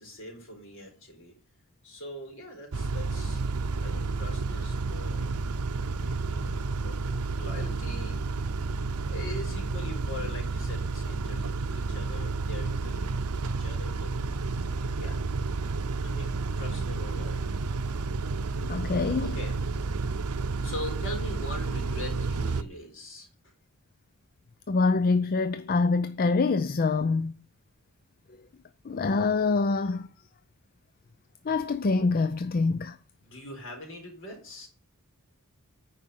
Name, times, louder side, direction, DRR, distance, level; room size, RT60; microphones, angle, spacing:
voice 1, 0.0-1.3 1.8-5.4 6.0-8.2 9.0-14.1 15.0-15.2 16.0-17.5 19.2-19.6 20.6-23.5 33.2-34.7, left 1 dB, 60° left, 4.1 m, -42 dB
Car / Idling / Accelerating revving vroom, 2.7-22.6, right 3 dB, 80° right, 0.7 m, -31 dB
voice 2, 18.7-19.3 24.7-27.3 28.9-30.1 31.5-32.9, left 4 dB, 40° left, 0.5 m, -25 dB
9.6 x 5.1 x 7.7 m
head